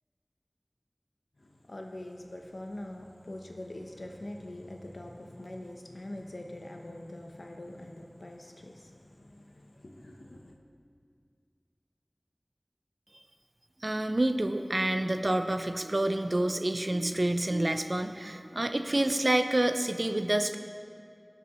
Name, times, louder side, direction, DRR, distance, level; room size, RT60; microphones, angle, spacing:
voice 1, 1.4-10.6, left 1 dB, 85° left, 2 dB, 0.9 m, -44 dB
voice 2, 13.8-20.6, right 1 dB, 55° right, 7 dB, 0.6 m, -28 dB
19.0 x 6.8 x 3.2 m, 2.3 s
wide cardioid pair, 40°, 0 cm